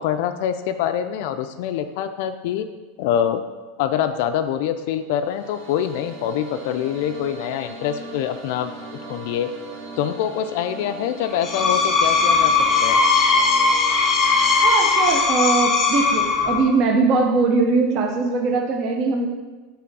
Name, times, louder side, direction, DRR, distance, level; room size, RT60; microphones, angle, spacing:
voice 1, 0.0-2.7 3.0-3.4 3.8-8.7 9.1-9.5 10.0-12.5 12.8-13.0, left 9 dB, 55° left, 9 dB, 0.3 m, -25 dB
sound 1, 5.0-15.2, right 3 dB, 80° right, 1.4 m, -40 dB
Screech, 11.3-16.8, left 4 dB, 20° left, 0.6 m, -19 dB
voice 2, 14.6-19.3, right 4 dB, 40° right, 3 dB, 0.5 m, -20 dB
5.9 x 3.5 x 4.6 m, 1.2 s
supercardioid pair, 165°, 0 cm